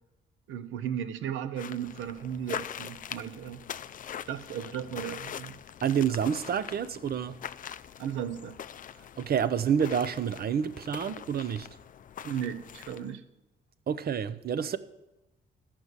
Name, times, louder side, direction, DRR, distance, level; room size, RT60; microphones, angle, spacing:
voice 1, 0.5-3.6 4.3-5.5 8.0-8.6 12.2-13.2, right 9 dB, 85° right, 0.9 m, -35 dB
sound 1, 1.6-13.1, left 9 dB, 45° left, 0.4 m, -43 dB
voice 2, 5.8-7.3 9.2-11.7 13.9-14.8, right 8 dB, 50° right, 0.7 m, -28 dB
13.0 x 6.1 x 8.1 m
cardioid pair, 90°, 20 cm